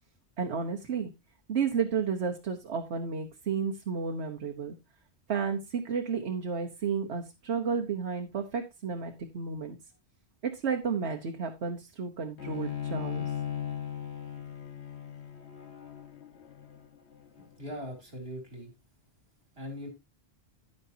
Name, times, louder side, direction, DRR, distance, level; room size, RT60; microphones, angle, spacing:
voice 1, 0.4-1.1 1.5-4.7 5.3-9.8 10.4-13.3, right 6 dB, 85° right, 3 dB, 1.4 m, -32 dB
Bowed string instrument, 12.4-17.7, left 9 dB, 85° left, 1.8 m, -38 dB
voice 2, 17.4-18.7 19.5-19.9, equal, 65° right, 3 dB, 3.3 m, -40 dB
11.0 x 9.7 x 2.8 m, 0.23 s
omnidirectional pair, 1.1 m